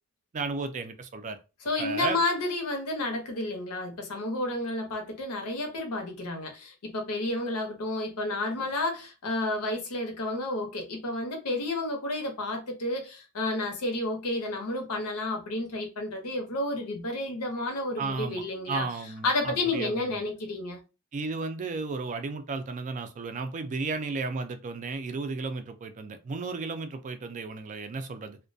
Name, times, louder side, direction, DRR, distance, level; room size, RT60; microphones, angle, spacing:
voice 1, 0.3-1.4 1.8-2.2 18.0-20.2 21.1-28.4, right 4 dB, 35° right, 0.3 m, -34 dB
voice 2, 1.6-18.9 19.2-20.8, left 2 dB, 85° left, 0.7 m, -31 dB
2.3 x 2.1 x 2.6 m
head